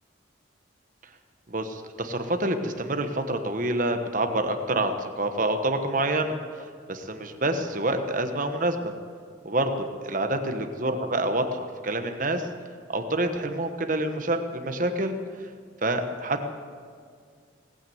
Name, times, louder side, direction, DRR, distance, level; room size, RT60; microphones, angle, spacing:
voice 1, 1.5-6.3 6.9-8.9 9.4-12.5 12.9-15.1 15.8-16.5, right 1 dB, 45° right, 6 dB, 1.2 m, -27 dB
19.0 x 9.2 x 7.9 m, 2.1 s
head